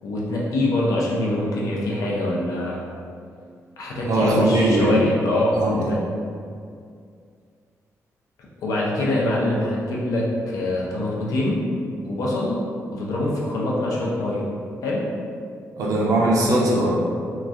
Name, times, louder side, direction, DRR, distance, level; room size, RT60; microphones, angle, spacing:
voice 1, 0.0-2.8 3.8-6.0 8.6-11.7 12.0-12.6 12.9-14.4 14.8-15.0, left 1 dB, 85° left, -4 dB, 0.6 m, -24 dB
voice 2, 4.1-5.0 5.5-5.9 15.8-16.9, right 1 dB, 75° right, -3 dB, 0.6 m, -20 dB
3.0 x 2.4 x 2.4 m, 2.3 s
wide cardioid pair, 155°, 6 cm